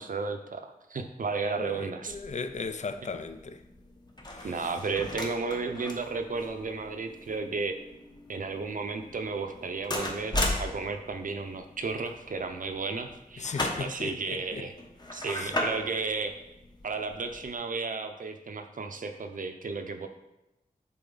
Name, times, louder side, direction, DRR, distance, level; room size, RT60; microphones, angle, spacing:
voice 1, 0.0-2.2 4.4-7.7 8.3-13.5 13.8-14.7 15.1-16.4 16.8-20.1, right 4 dB, 65° right, 0.6 m, -33 dB
voice 2, 1.6-3.6 4.4-4.6 13.4-14.7 15.2-15.5, left 4 dB, 50° left, 0.5 m, -37 dB
sound 1, 2.1-17.5, left 1 dB, 30° left, 1.0 m, -38 dB
7.0 x 4.2 x 3.9 m
wide cardioid pair, 90°, 15 cm